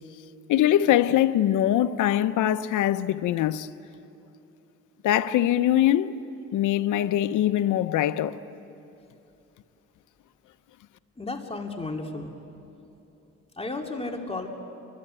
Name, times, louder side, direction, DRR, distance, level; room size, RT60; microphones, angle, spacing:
voice 1, 0.5-3.7 5.0-6.2 6.5-8.4, left 12 dB, 80° left, 0.9 m, -22 dB
voice 2, 11.2-12.3 13.6-14.5, left 2 dB, 20° left, 2.5 m, -33 dB
29.0 x 23.0 x 8.9 m
cardioid pair, 90°, 30 cm